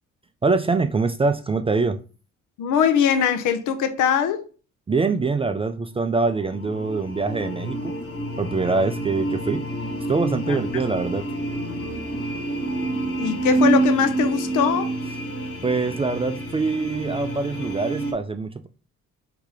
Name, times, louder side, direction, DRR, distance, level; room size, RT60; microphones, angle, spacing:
voice 1, 0.4-2.0 4.9-8.0 8.4-9.7 10.1-11.3 15.6-18.7, right 4 dB, 20° right, 0.3 m, -24 dB
voice 2, 2.6-4.5 10.5-10.6 13.2-14.9, left 7 dB, 85° left, 0.7 m, -21 dB
sound 1, 6.0-18.1, right 2 dB, 45° left, 1.3 m, -28 dB
3.7 x 2.8 x 4.7 m
cardioid pair, 90°, 30 cm